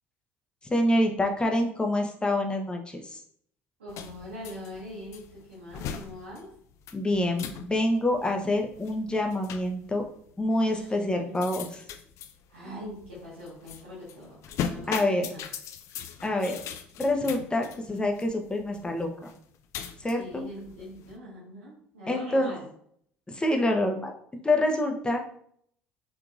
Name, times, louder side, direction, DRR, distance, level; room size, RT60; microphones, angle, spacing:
voice 1, 0.7-3.2 6.9-10.0 10.4-11.7 14.9-15.3 16.2-16.6 17.0-19.3 20.0-20.5 22.1-22.5 23.3-25.2, left 1 dB, 15° left, 3 dB, 0.8 m, -26 dB
voice 2, 3.8-6.5 10.6-10.9 11.2-11.3 12.5-14.4 14.7-15.5 20.1-22.7, left 1 dB, 75° right, -8 dB, 1.5 m, -42 dB
sound 1, 3.9-21.2, left 8 dB, 50° left, 0.4 m, -40 dB
4.7 x 3.5 x 2.6 m, 0.64 s
figure-of-eight pair, 55°, 7 cm